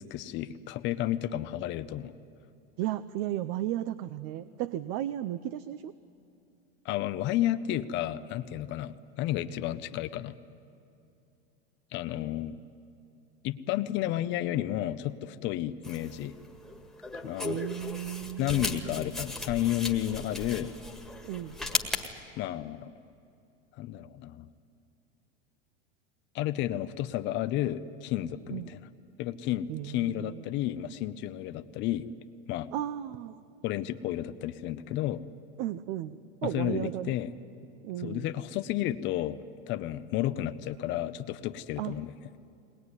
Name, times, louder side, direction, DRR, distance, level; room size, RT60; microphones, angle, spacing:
voice 1, 0.0-2.1 6.8-10.3 11.9-12.6 13.4-16.4 17.1-17.6 18.4-20.7 22.4-22.9 23.7-24.5 26.3-28.8 29.2-32.1 32.5-32.7 33.6-35.3 36.4-37.3 38.0-39.4 39.7-42.1, left 13 dB, 35° left, 12 dB, 0.7 m, -32 dB
voice 2, 2.8-5.9 17.4-19.2 21.2-21.6 28.5-28.7 29.7-30.4 32.7-33.4 35.6-37.2 37.8-38.3 41.8-42.0, right 12 dB, 45° right, 13 dB, 0.7 m, -35 dB
sound 1, 15.8-22.1, left 2 dB, ahead, 1.8 m, -37 dB
22.0 x 20.0 x 9.8 m, 2.6 s
supercardioid pair, 145°, 32 cm